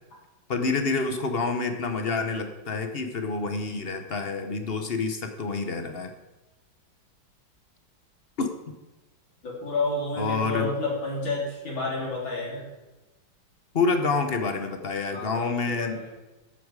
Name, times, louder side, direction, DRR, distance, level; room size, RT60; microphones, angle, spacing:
voice 1, 0.5-6.1 8.4-8.5 10.2-10.7 13.7-16.0, left 4 dB, 40° left, 7 dB, 0.9 m, -28 dB
voice 2, 9.4-12.7 15.1-16.1, left 2 dB, 75° left, -3 dB, 4.2 m, -30 dB
14.0 x 8.7 x 4.8 m, 1.1 s
omnidirectional pair, 2.2 m